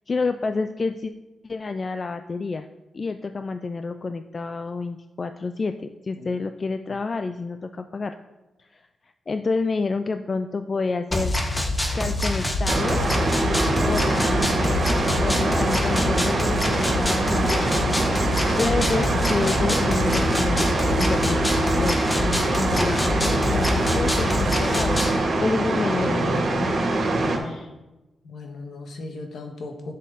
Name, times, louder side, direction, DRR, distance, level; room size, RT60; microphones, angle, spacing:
voice 1, 0.1-1.1 1.4-2.7 2.9-8.1 8.6-8.8 9.3-11.3 11.9-13.0 13.9-14.8 15.2-21.4 21.7-26.8, left 4 dB, 35° left, 9 dB, 0.4 m, -29 dB
sound 1, 11.1-25.2, left 1 dB, 20° left, 1.3 m, -25 dB
sound 2, 12.7-27.4, right 2 dB, 55° right, 2.6 m, -24 dB
voice 2, 28.2-29.9, left 3 dB, 65° left, 3 dB, 1.5 m, -37 dB
11.0 x 6.4 x 4.1 m, 1.0 s
cardioid pair, 115°, 0 cm